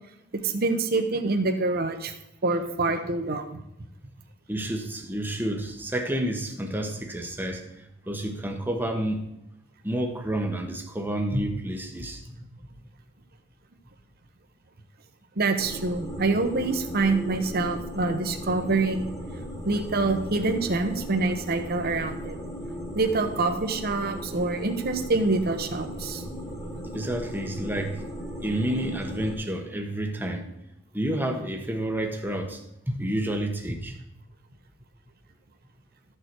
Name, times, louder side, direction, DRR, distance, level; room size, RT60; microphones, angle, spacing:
voice 1, 0.4-2.1 2.4-3.6 15.4-19.1 19.6-22.4 22.9-26.3, right 3 dB, 50° right, 6 dB, 1.0 m, -26 dB
voice 2, 4.5-9.2 9.8-12.4 26.9-28.0 28.4-30.5 30.9-34.0, right 1 dB, 10° right, 3 dB, 1.1 m, -30 dB
sound 1, 15.6-29.4, equal, 15° left, 1.7 m, -37 dB
13.0 x 6.7 x 4.6 m, 0.84 s
head